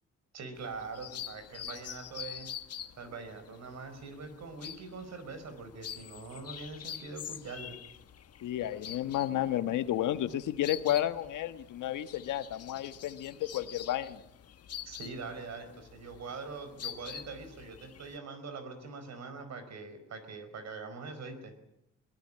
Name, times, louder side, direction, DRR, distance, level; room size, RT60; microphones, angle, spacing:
voice 1, 0.3-2.5 3.0-7.8 14.8-21.5, right 4 dB, 60° right, 9 dB, 4.8 m, -43 dB
sound 1, 0.6-18.2, left 9 dB, 55° left, 1.2 m, -46 dB
voice 2, 8.4-14.2, left 12 dB, 80° left, 11 dB, 1.4 m, -32 dB
22.0 x 19.5 x 8.7 m, 0.79 s
cardioid pair, 90°, 30 cm